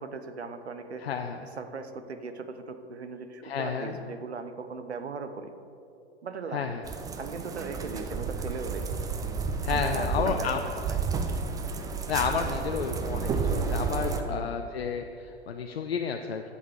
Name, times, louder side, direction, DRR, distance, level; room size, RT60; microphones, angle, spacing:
voice 1, 0.0-1.1 1.4-5.5 6.2-6.7 7.2-8.9 9.7-11.0 14.3-14.6, right 4 dB, 75° right, 9 dB, 0.9 m, -38 dB
voice 2, 1.0-1.4 3.4-4.0 6.5-6.8 9.6-10.6 12.1-16.4, left 6 dB, 70° left, 4 dB, 0.7 m, -31 dB
sound 1, 6.8-14.2, right 5 dB, 10° right, 0.5 m, -31 dB
11.0 x 8.1 x 4.9 m, 2.7 s
figure-of-eight pair, 100°, 33 cm